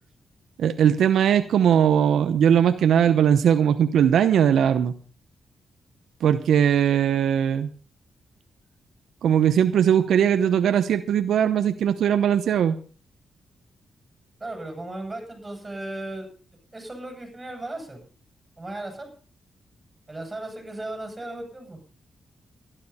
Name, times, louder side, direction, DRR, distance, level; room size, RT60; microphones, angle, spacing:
voice 1, 0.6-4.9 6.2-7.7 9.2-12.8, right 9 dB, 85° right, 9 dB, 0.8 m, -20 dB
voice 2, 14.4-16.3 16.7-18.0 18.6-19.1 20.1-21.8, right 2 dB, 20° right, 4 dB, 7.9 m, -36 dB
13.0 x 12.0 x 5.5 m, 0.40 s
cardioid pair, 80°, 0 cm